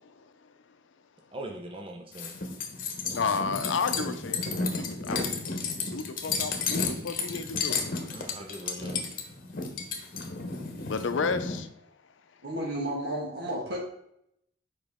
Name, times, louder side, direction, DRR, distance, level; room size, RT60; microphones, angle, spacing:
voice 1, 1.3-2.3 8.1-9.1, right 1 dB, 30° right, 0.8 m, -41 dB
sound 1, 2.1-11.6, left 4 dB, 50° left, 1.1 m, -32 dB
voice 2, 3.1-5.3 5.9-7.8 10.9-11.7, left 5 dB, 85° left, 0.6 m, -32 dB
voice 3, 12.4-13.8, right 1 dB, 60° right, 1.5 m, -32 dB
7.5 x 5.0 x 3.6 m
head